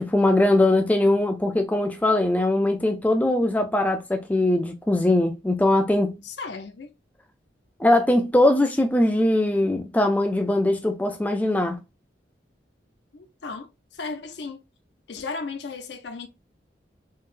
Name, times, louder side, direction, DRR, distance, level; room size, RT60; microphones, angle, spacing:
voice 1, 0.0-6.2 7.8-11.8, left 1 dB, 10° left, 0.3 m, -21 dB
voice 2, 6.2-6.9 13.1-14.6 15.1-16.3, left 4 dB, 70° left, 0.5 m, -35 dB
3.7 x 2.1 x 2.4 m
head